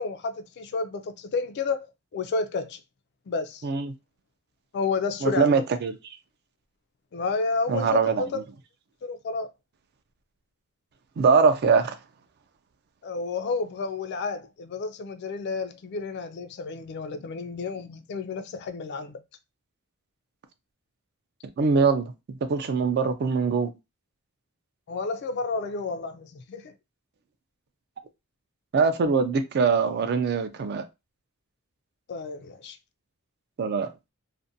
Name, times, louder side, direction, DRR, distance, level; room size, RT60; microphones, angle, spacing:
voice 1, 0.0-1.9 2.1-2.8 3.3-3.7 4.7-5.6 7.1-8.4 9.0-9.5 13.0-19.2 24.9-26.7 32.1-32.8, left 4 dB, 50° left, 0.3 m, -31 dB
voice 2, 3.6-3.9 5.2-6.0 7.7-8.4 11.2-11.9 21.6-23.7 28.7-30.9 33.6-33.9, right 5 dB, 50° right, 0.4 m, -23 dB
2.5 x 2.1 x 2.6 m
head